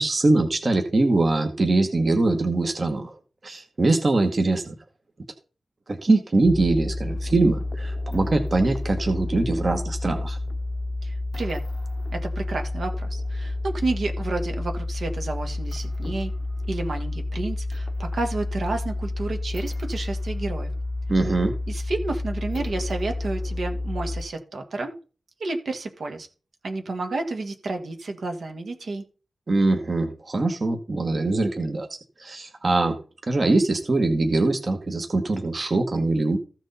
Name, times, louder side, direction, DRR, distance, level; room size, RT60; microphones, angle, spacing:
voice 1, 0.0-3.2 3.4-4.7 5.9-10.4 21.1-21.5 29.5-31.9 32.2-33.0 33.3-36.4, right 2 dB, 40° right, 5 dB, 1.2 m, -22 dB
sound 1, 6.4-24.2, left 2 dB, 25° left, 0.7 m, -30 dB
voice 2, 11.0-11.6 12.1-16.3 16.7-20.7 21.7-25.0 25.4-26.3 26.6-29.0, right 2 dB, 70° right, 4 dB, 1.7 m, -30 dB
14.5 x 6.2 x 4.0 m, 0.36 s
wide cardioid pair, 125°, 0 cm